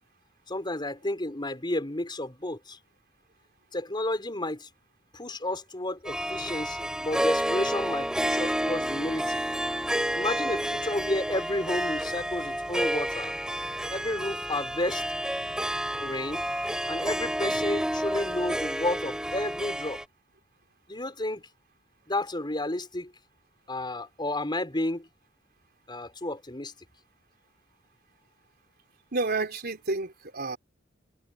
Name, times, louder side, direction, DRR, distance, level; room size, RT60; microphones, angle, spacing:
voice 1, 0.5-2.8 3.7-4.7 5.1-9.4 10.1-13.3 13.9-15.0 16.0-16.5 16.9-20.0 20.9-21.5 22.1-23.1 23.7-25.1 25.9-26.7, left 1 dB, 25° left, 5.1 m, -31 dB
Harp, 6.1-20.0, equal, 5° right, 4.9 m, -30 dB
voice 2, 29.1-30.6, right 3 dB, 55° right, 4.1 m, -30 dB
head